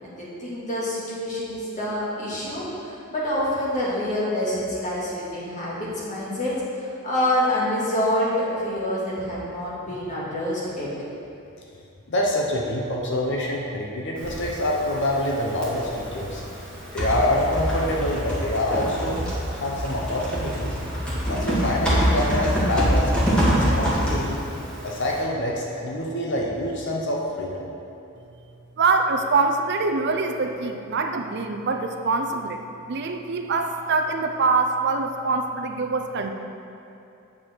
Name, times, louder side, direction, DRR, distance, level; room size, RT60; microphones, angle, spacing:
voice 1, 0.0-10.9, left 1 dB, 35° left, -7 dB, 2.2 m, -27 dB
voice 2, 12.1-16.4 16.9-19.2 19.5-20.8 21.3-24.4 24.8-27.7, left 1 dB, 55° left, -2 dB, 0.9 m, -26 dB
Typing, 14.2-25.2, equal, 5° left, 2.0 m, -26 dB
voice 3, 28.8-32.6 32.9-36.3, right 4 dB, 50° right, 5 dB, 0.5 m, -24 dB
8.8 x 7.2 x 4.5 m, 2.7 s
head